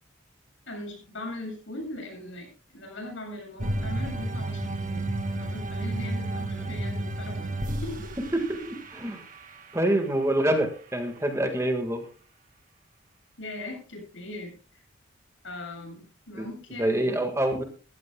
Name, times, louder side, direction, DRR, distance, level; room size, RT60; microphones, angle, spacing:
voice 1, 0.7-5.1 5.4-8.0 13.4-14.8 15.4-17.3, left 1 dB, 65° left, 3 dB, 7.6 m, -40 dB
sound 1, 3.6-10.0, right 1 dB, 40° right, 2.0 m, -32 dB
voice 2, 8.3-9.2 9.7-12.0 16.3-16.5 16.8-17.6, right 1 dB, 15° right, 5 dB, 1.8 m, -26 dB
21.5 x 15.0 x 2.3 m, 0.36 s
head